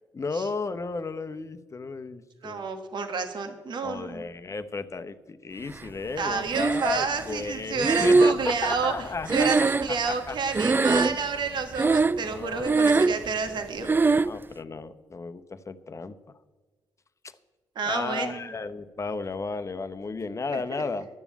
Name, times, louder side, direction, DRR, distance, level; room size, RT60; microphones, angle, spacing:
voice 1, 0.1-2.7 3.8-10.4 10.7-10.9 11.8-13.3 13.8-16.1 17.2-17.3 17.8-21.1, left 4 dB, 35° left, 10 dB, 0.9 m, -34 dB
voice 2, 2.4-4.2 6.2-8.9 9.3-13.9 17.7-18.4 20.7-20.8, right 5 dB, 60° right, 6 dB, 1.5 m, -29 dB
Breathing, 6.5-7.2 7.8-10.3 10.5-11.4 11.7-12.3 12.6-13.3 13.9-14.4, right 3 dB, 25° right, 0.4 m, -22 dB
12.0 x 7.1 x 8.4 m, 1.3 s
hypercardioid pair, 50°, 9 cm